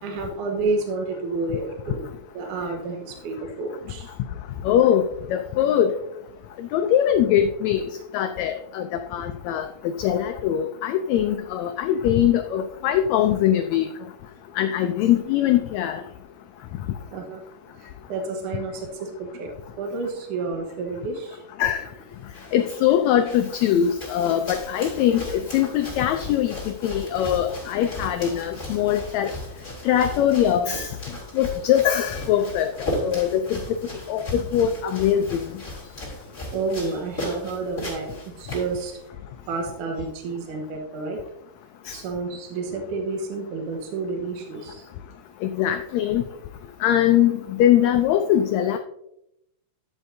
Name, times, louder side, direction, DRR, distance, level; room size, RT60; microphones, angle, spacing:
voice 1, 0.0-2.0 2.3-4.2 17.1-17.4 17.7-19.5 19.8-21.4 36.5-39.0 39.5-41.2 41.9-44.9, right 3 dB, 75° right, 2 dB, 2.7 m, -30 dB
voice 2, 4.6-5.9 6.6-9.7 10.0-13.9 14.6-16.0 21.6-21.9 22.5-29.3 29.8-30.9 31.3-32.7 33.0-33.6 34.1-35.4 41.9-42.0 45.4-46.2 46.8-48.8, left 10 dB, 85° left, 8 dB, 1.6 m, -22 dB
sound 1, 22.1-39.1, left 1 dB, 15° left, 3.7 m, -36 dB
12.0 x 8.1 x 2.7 m, 0.82 s
omnidirectional pair, 3.7 m